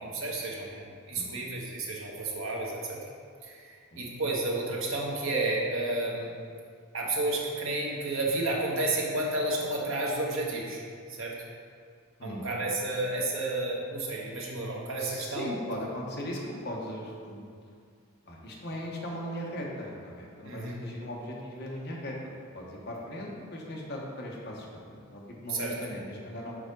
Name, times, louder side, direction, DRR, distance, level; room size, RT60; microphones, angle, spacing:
voice 1, 0.0-3.0 3.4-6.3 6.9-10.8 11.1-11.4 12.2-15.5 20.4-20.8 25.5-25.7, right 2 dB, 65° right, -2 dB, 1.1 m, -31 dB
voice 2, 15.0-17.5 18.3-22.2 22.5-26.6, equal, 50° left, -2 dB, 1.0 m, -38 dB
4.9 x 4.7 x 5.2 m, 2.1 s
head